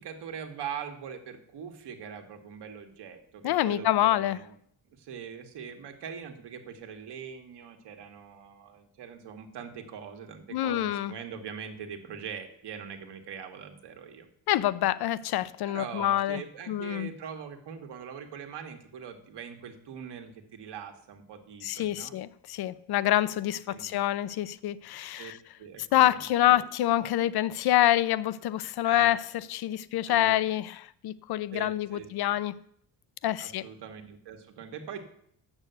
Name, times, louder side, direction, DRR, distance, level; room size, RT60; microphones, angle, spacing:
voice 1, 0.0-4.6 4.9-14.3 15.6-22.2 23.7-24.0 25.2-25.3 25.6-26.6 28.8-29.2 30.1-30.4 31.5-32.3 33.4-35.0, right 7 dB, 70° right, 1.6 m, -42 dB
voice 2, 3.4-4.4 10.5-11.1 14.5-16.4 16.7-17.1 21.6-25.4 25.9-30.8 31.0-32.6 33.2-33.6, left 13 dB, 65° left, 0.6 m, -26 dB
7.1 x 6.7 x 8.0 m
cardioid pair, 80°, 42 cm